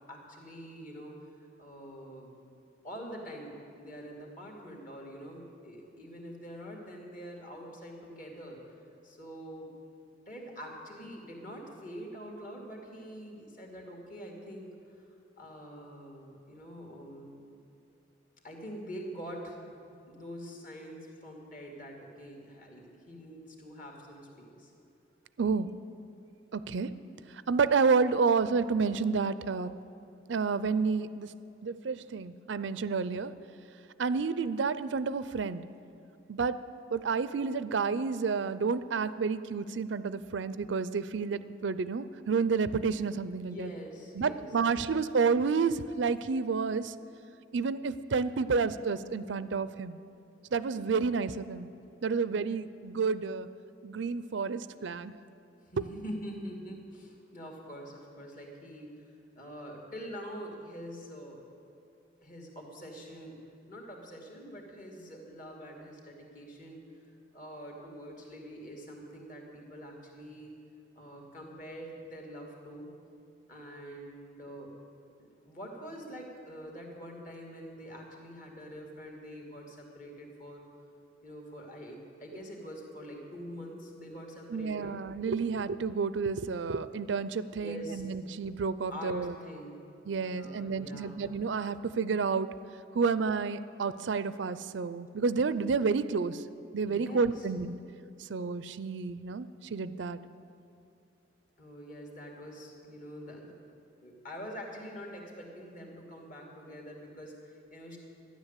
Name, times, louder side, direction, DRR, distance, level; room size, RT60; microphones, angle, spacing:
voice 1, 0.1-2.3 2.8-9.7 10.3-14.7 15.4-17.4 18.4-24.7 43.4-44.5 55.6-61.6 62.2-63.4 63.7-66.8 67.3-70.6 71.0-72.9 73.5-74.7 75.2-80.6 81.2-85.0 87.6-88.0 88.9-89.8 90.2-91.2 96.8-97.5 101.6-103.6 104.0-108.0, equal, 45° left, 0 dB, 2.5 m, -45 dB
voice 2, 25.4-25.7 26.5-26.9 27.5-29.7 30.3-31.3 31.6-33.3 34.0-35.6 36.3-36.6 36.9-43.7 44.2-46.9 47.5-50.0 50.5-51.7 52.0-53.5 53.8-55.1 55.8-55.9 84.5-89.3 90.1-92.5 92.9-96.4 96.7-97.8 98.2-100.2, right 5 dB, 70° right, 14 dB, 0.5 m, -30 dB
13.0 x 10.0 x 8.2 m, 2.6 s
head